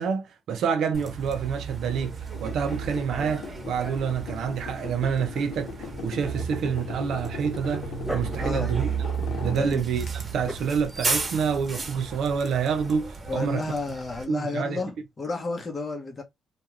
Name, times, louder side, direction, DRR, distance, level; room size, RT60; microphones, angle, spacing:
voice 1, 0.0-2.1 2.4-5.7 6.0-8.9 9.4-10.0 10.3-13.6 14.3-14.8, right 6 dB, 75° right, 0.7 m, -27 dB
Bus, 0.9-14.2, right 5 dB, 30° right, 1.0 m, -34 dB
sound 1, 2.3-10.1, left 6 dB, 75° left, 0.5 m, -40 dB
Dog, 7.5-13.4, equal, ahead, 0.7 m, -42 dB
voice 2, 8.4-8.7 9.5-9.8 13.3-16.2, left 3 dB, 30° left, 0.9 m, -31 dB
2.4 x 2.3 x 3.0 m
cardioid pair, 90°, 0 cm